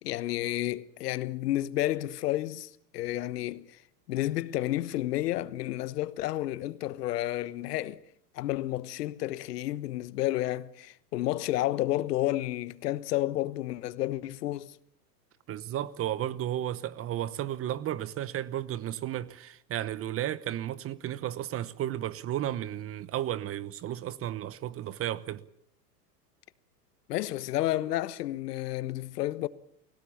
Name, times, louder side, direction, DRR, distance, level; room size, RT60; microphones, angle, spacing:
voice 1, 0.0-3.8 4.1-8.0 8.3-14.7 27.1-29.5, left 15 dB, 70° left, 1.3 m, -31 dB
voice 2, 15.5-25.4, right 12 dB, 25° right, 1.0 m, -33 dB
28.5 x 17.0 x 7.2 m
hypercardioid pair, 115°, 49 cm